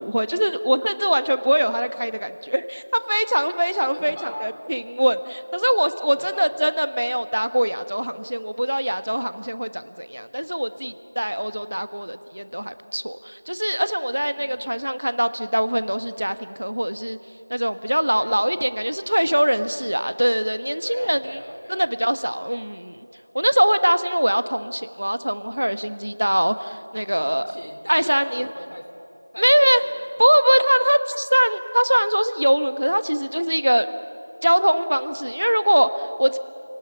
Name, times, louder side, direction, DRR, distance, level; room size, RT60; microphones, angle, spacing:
voice 1, 0.0-17.2 17.5-21.4 21.7-23.0 23.3-27.4 27.9-28.5 29.4-29.8 30.2-33.9 34.4-36.4, equal, 80° right, 12 dB, 1.2 m, -22 dB
voice 2, 3.9-4.5 6.2-6.6 14.4-14.7 18.1-18.5 20.8-22.0 27.2-28.9 29.3-30.2, equal, 60° left, 6 dB, 3.2 m, -39 dB
29.5 x 18.0 x 7.2 m, 2.7 s
figure-of-eight pair, 180°, 0 cm